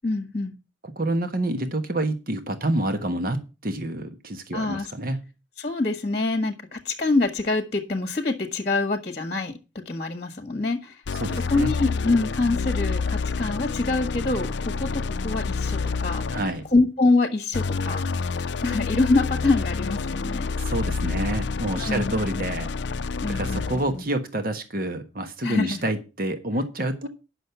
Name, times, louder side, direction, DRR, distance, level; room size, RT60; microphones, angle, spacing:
voice 1, 0.0-0.5 4.5-4.9 5.6-9.6 9.8-11.0 11.5-16.4 16.7-18.0 18.6-20.5 21.8-22.4 23.2-24.0 25.4-25.8, left 3 dB, 35° left, 1.4 m, -25 dB
voice 2, 0.9-5.3 11.1-11.7 16.3-16.6 20.6-22.7 23.3-27.1, right 1 dB, 50° right, 1.3 m, -28 dB
sound 1, 11.1-16.7 17.5-23.9, left 4 dB, 65° left, 0.5 m, -28 dB
9.9 x 6.3 x 6.9 m
head